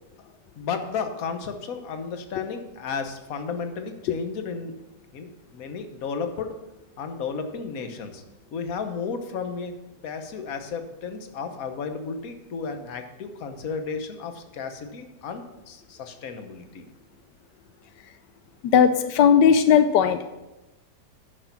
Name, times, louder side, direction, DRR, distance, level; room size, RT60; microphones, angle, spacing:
voice 1, 0.6-4.7 5.1-6.5 7.0-8.2 8.5-9.7 10.0-16.8, left 5 dB, 60° left, 7 dB, 1.4 m, -33 dB
voice 2, 18.7-20.2, left 7 dB, 85° left, 10 dB, 1.2 m, -17 dB
9.7 x 6.7 x 5.9 m, 0.99 s
omnidirectional pair, 1.8 m